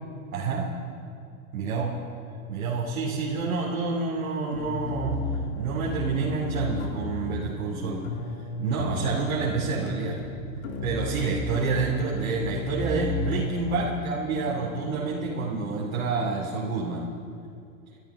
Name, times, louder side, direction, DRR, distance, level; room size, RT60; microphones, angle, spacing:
voice 1, 0.3-0.7 1.5-1.9 2.5-5.2 5.5-8.0 8.6-10.2 10.8-17.1, right 4 dB, 80° right, -4 dB, 2.7 m, -28 dB
sound 1, 4.5-17.3, left 3 dB, 80° left, 2.4 m, -34 dB
28.5 x 13.0 x 3.6 m, 2.6 s
hypercardioid pair, 115°, 41 cm